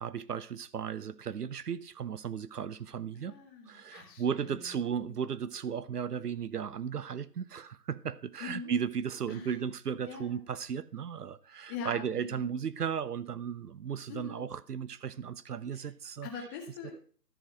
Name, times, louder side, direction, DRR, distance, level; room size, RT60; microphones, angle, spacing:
voice 1, 0.0-3.3 3.7-16.3, right 7 dB, 70° right, 0.7 m, -35 dB
voice 2, 3.1-5.2 8.4-8.8 9.3-9.6 10.0-10.4 11.7-12.5 14.1-14.5 15.7-15.9 16.2-16.9, left 5 dB, 15° left, 1.3 m, -43 dB
13.5 x 5.0 x 5.8 m
figure-of-eight pair, 150°, 49 cm